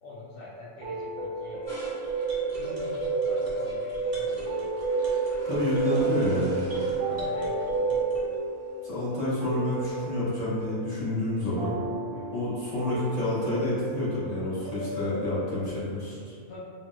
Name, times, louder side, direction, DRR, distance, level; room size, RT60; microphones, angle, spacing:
voice 1, 0.0-1.6 2.5-4.6 5.4-6.6 7.0-8.0 12.1-12.5 16.4-16.6, left 2 dB, 70° left, -8 dB, 0.9 m, -46 dB
sound 1, 0.8-15.8, equal, 70° right, 1.0 m, -37 dB
sound 2, 1.6-8.4, right 5 dB, 35° right, 0.6 m, -29 dB
sound 3, 1.7-9.9, left 1 dB, 55° left, 1.2 m, -47 dB
voice 2, 5.4-6.6 8.8-11.8 12.3-16.4, left 1 dB, 30° left, -12 dB, 1.1 m, -29 dB
3.9 x 2.1 x 2.3 m, 2.1 s
omnidirectional pair, 1.5 m